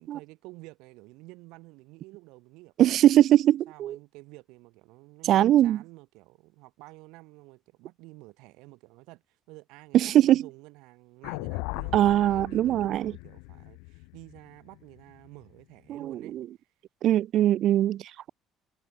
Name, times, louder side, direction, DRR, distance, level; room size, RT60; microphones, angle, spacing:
voice 1, 0.0-2.9 3.7-16.7, right 23 dB, 80° right, 3.4 m, -50 dB
voice 2, 2.8-4.0 5.2-5.8 9.9-10.5 11.9-13.1 15.9-16.5 17.0-18.3, right 12 dB, 65° right, 0.4 m, -21 dB
sound 1, 11.2-15.5, left 34 dB, 85° left, 0.7 m, -38 dB
supercardioid pair, 75°, 0 cm